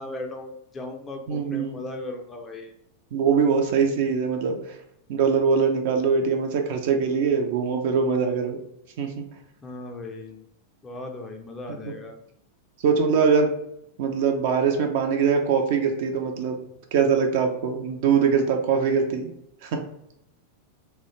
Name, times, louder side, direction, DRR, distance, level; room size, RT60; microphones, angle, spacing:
voice 1, 0.0-2.7 9.6-10.4 10.8-12.2, left 2 dB, 15° left, 3 dB, 0.4 m, -37 dB
voice 2, 1.3-1.8 3.1-4.8 5.1-8.6 9.0-9.3 11.7-11.9 12.8-13.5 14.0-16.6 16.9-19.3 19.6-19.8, right 6 dB, 50° right, 4 dB, 0.4 m, -22 dB
2.3 x 2.1 x 2.9 m, 0.79 s
figure-of-eight pair, 90°, 0 cm